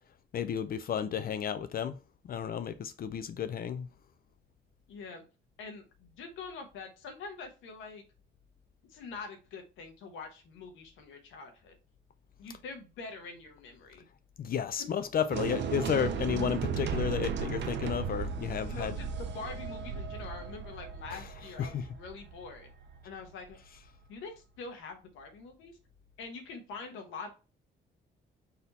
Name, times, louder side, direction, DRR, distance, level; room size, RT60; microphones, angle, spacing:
voice 1, 0.3-2.0 2.2-3.9 14.4-18.9 21.1-21.2 21.6-21.8, left 8 dB, 50° left, 0.4 m, -32 dB
voice 2, 4.9-5.2 5.6-8.0 8.9-11.7 12.4-14.0 14.8-14.9 18.6-22.7 23.0-23.6 24.1-25.8 26.2-27.3, left 4 dB, 90° left, 1.0 m, -44 dB
sound 1, 15.3-23.4, right 6 dB, 65° right, 0.6 m, -36 dB
4.1 x 2.8 x 4.0 m
cardioid pair, 90°, 20 cm